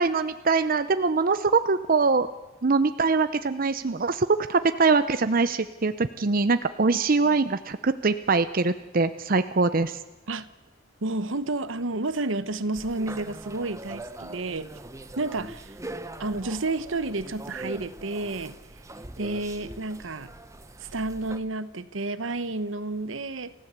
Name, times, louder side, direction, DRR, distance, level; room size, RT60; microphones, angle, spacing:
voice 1, 0.0-2.3 2.6-10.0, right 4 dB, 45° right, 0.7 m, -23 dB
voice 2, 11.0-14.7 15.2-15.7 16.2-18.6 19.2-20.3 20.9-23.5, right 2 dB, 75° right, 1.0 m, -30 dB
sound 1, 12.7-21.4, right 2 dB, 15° right, 0.9 m, -42 dB
28.5 x 15.5 x 8.2 m
head